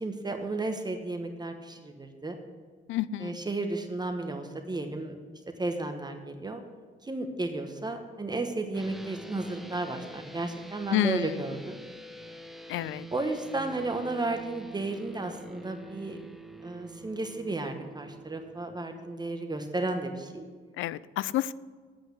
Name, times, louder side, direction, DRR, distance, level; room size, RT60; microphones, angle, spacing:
voice 1, 0.0-2.4 3.2-5.2 5.6-6.6 7.0-11.8 13.1-16.2 16.6-20.4, right 2 dB, 20° right, 5 dB, 1.1 m, -33 dB
voice 2, 2.9-3.4 10.9-11.4 12.7-13.1 20.8-21.5, left 12 dB, 80° left, 19 dB, 0.4 m, -29 dB
sound 1, 8.7-18.7, right 1 dB, ahead, 0.8 m, -46 dB
8.3 x 8.2 x 8.2 m, 1.5 s
cardioid pair, 90°, 20 cm